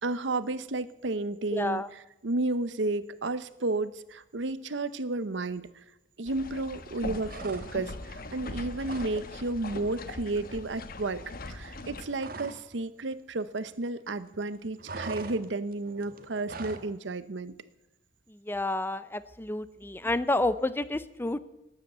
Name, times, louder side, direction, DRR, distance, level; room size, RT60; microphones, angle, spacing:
voice 1, 0.0-5.7 6.2-11.2 11.5-17.5, right 2 dB, 70° right, 15 dB, 0.8 m, -32 dB
voice 2, 1.5-1.9 18.5-21.4, left 2 dB, 10° left, 14 dB, 0.5 m, -29 dB
sound 1, 6.3-12.1, left 2 dB, 50° left, 1.1 m, -41 dB
sound 2, 7.2-8.0 8.3-9.2 9.5-9.7 10.0-12.7 13.0-14.1 14.3-16.9, right 3 dB, 50° right, 1.3 m, -43 dB
12.5 x 10.5 x 8.0 m, 0.91 s
head